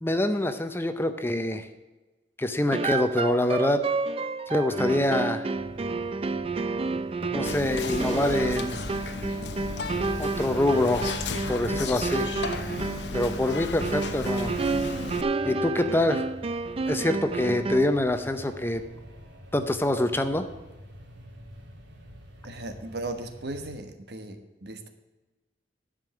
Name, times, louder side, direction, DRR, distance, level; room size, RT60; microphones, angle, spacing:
voice 1, 0.0-1.7 2.4-3.8 4.5-5.5 7.3-8.8 10.2-11.1 11.5-12.3 13.1-14.5 15.5-16.2 16.9-18.8 19.5-20.5, left 1 dB, 15° left, 9 dB, 0.6 m, -25 dB
sound 1, 2.7-18.0, right 3 dB, 30° right, 0.4 m, -30 dB
sound 2, 5.5-23.7, equal, 80° right, 2.9 m, -46 dB
Whispering, 7.5-15.2, left 3 dB, 75° left, 0.8 m, -34 dB
voice 2, 22.4-24.9, right 2 dB, 65° right, 7 dB, 1.3 m, -37 dB
11.0 x 5.4 x 8.5 m, 1.2 s
head